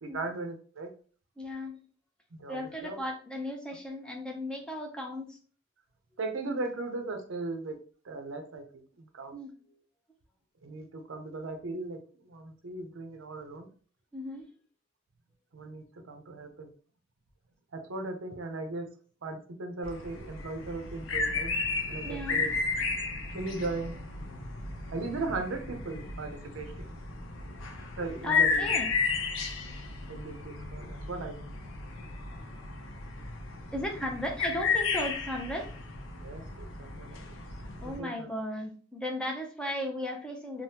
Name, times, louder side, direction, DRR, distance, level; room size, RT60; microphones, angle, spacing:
voice 1, 0.0-0.9 2.3-3.0 6.2-7.8 8.0-8.6 9.0-9.3 10.6-13.7 15.5-16.7 17.7-18.9 19.2-21.5 21.9-22.5 23.3-24.0 24.3-24.4 24.8-26.9 27.9-28.6 30.1-31.4 36.2-37.4 37.8-38.3, right 3 dB, 80° right, 5 dB, 0.6 m, -38 dB
voice 2, 1.4-1.8 2.5-5.4 9.3-9.8 14.1-14.5 22.0-22.5 28.2-28.9 33.7-35.7 37.8-40.6, left 1 dB, 5° left, 1 dB, 0.5 m, -36 dB
sound 1, 19.8-38.0, left 4 dB, 75° left, 0.6 m, -33 dB
3.4 x 2.1 x 2.7 m, 0.41 s
head